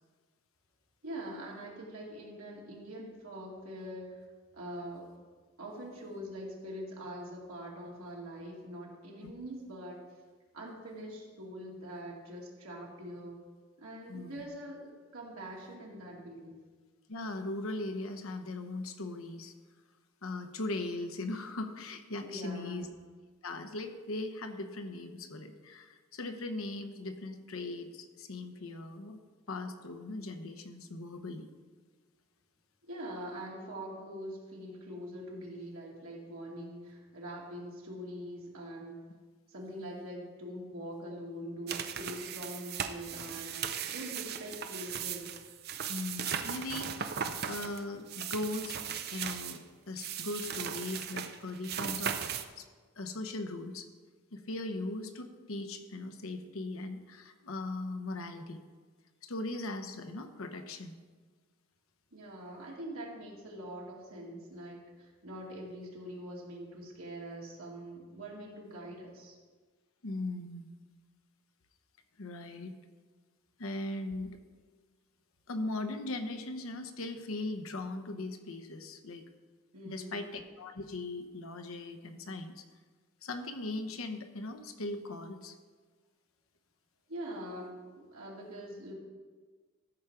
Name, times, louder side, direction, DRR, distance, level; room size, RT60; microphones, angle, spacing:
voice 1, 1.0-4.1 4.5-5.1 5.6-10.0 10.5-13.4 13.8-16.6 22.2-22.8 32.8-39.0 39.5-43.6 43.9-45.4 62.1-69.4 79.7-80.2 87.1-88.9, equal, 80° right, -2 dB, 2.3 m, -43 dB
voice 2, 14.1-14.4 17.1-19.5 20.2-22.9 23.4-29.2 29.5-31.5 45.9-49.6 49.9-52.7 53.0-53.9 54.3-58.6 59.2-61.0 70.0-70.7 72.2-72.7 73.6-74.4 75.5-79.2 79.8-82.6 83.2-85.6, left 2 dB, 75° left, 7 dB, 0.9 m, -39 dB
sound 1, 41.7-49.6 50.0-52.4, right 8 dB, 45° right, 0.5 m, -38 dB
13.5 x 4.9 x 5.8 m, 1.4 s
head